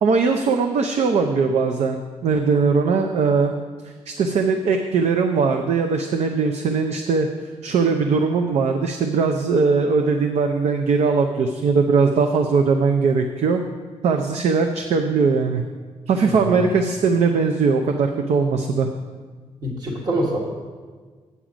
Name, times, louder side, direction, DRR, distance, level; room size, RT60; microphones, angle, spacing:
voice 1, 0.0-3.5 3.8-7.3 7.6-13.6 14.0-15.6 16.1-18.9, right 4 dB, 70° right, 4 dB, 0.6 m, -20 dB
voice 2, 19.6-20.4, right 1 dB, 35° right, -1 dB, 1.3 m, -25 dB
8.3 x 7.4 x 5.0 m, 1.5 s
wide cardioid pair, 140°, 11 cm